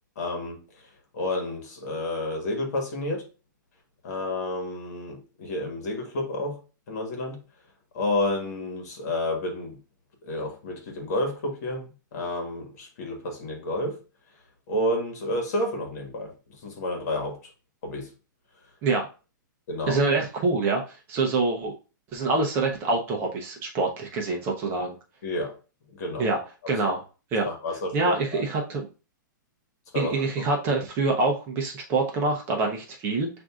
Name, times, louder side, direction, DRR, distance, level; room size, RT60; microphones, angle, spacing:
voice 1, 0.2-0.6 1.1-3.2 4.0-7.4 7.9-9.8 10.2-14.0 14.7-16.3 16.6-17.4 17.8-18.1 19.7-20.0 25.2-25.6 25.9-26.3 27.4-28.4 29.9-30.4, left 1 dB, 55° left, 1.4 m, -30 dB
voice 2, 19.9-21.7 22.1-25.0 26.2-26.4 26.7-27.0 27.3-27.5 27.9-28.8 29.9-33.3, right 3 dB, 20° right, 0.6 m, -25 dB
7.2 x 2.6 x 2.4 m
hypercardioid pair, 165°, 11 cm